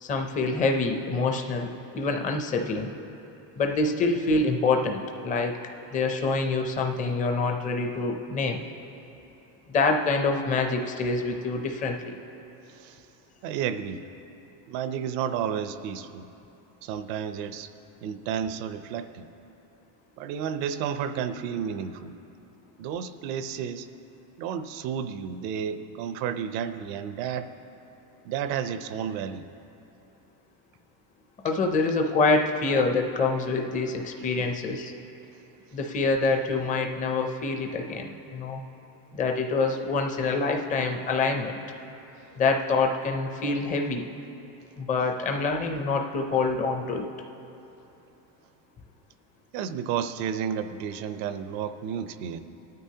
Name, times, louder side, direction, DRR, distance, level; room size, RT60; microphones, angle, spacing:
voice 1, 0.0-2.9 3.6-5.6 5.9-8.6 9.7-12.1 31.4-34.9 35.7-38.6 39.1-41.6 42.4-44.1 44.8-47.1, left 3 dB, 15° left, 3 dB, 0.5 m, -26 dB
voice 2, 13.4-14.0 14.7-16.3 16.8-17.7 18.0-19.3 20.2-22.1 22.8-23.9 24.4-27.5 28.2-29.5 34.4-34.5 49.5-52.4, right 8 dB, 80° right, 10 dB, 0.8 m, -31 dB
22.5 x 9.3 x 2.8 m, 3.0 s
cardioid pair, 160°, 47 cm